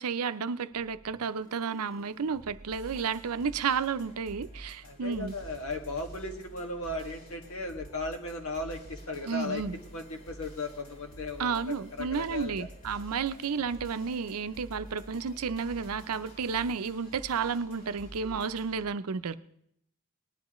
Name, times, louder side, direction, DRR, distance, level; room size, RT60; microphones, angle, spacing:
voice 1, 0.0-5.3 9.3-9.8 11.4-19.4, right 5 dB, 90° right, 0.6 m, -32 dB
sound 1, 0.7-18.8, right 1 dB, 45° left, 4.1 m, -49 dB
voice 2, 4.8-9.6 9.9-12.7, left 2 dB, 70° left, 1.9 m, -36 dB
19.5 x 11.0 x 3.1 m
head